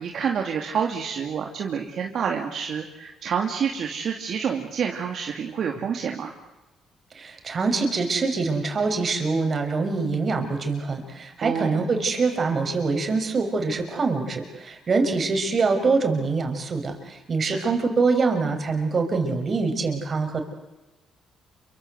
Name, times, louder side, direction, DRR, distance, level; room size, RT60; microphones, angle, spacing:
voice 1, 0.0-6.3 11.4-11.9 17.4-17.7, right 7 dB, 60° right, 2 dB, 2.8 m, -28 dB
voice 2, 7.1-20.4, right 4 dB, 45° right, 6 dB, 6.3 m, -24 dB
29.0 x 24.5 x 8.1 m, 1.1 s
cardioid pair, 75°, 0 cm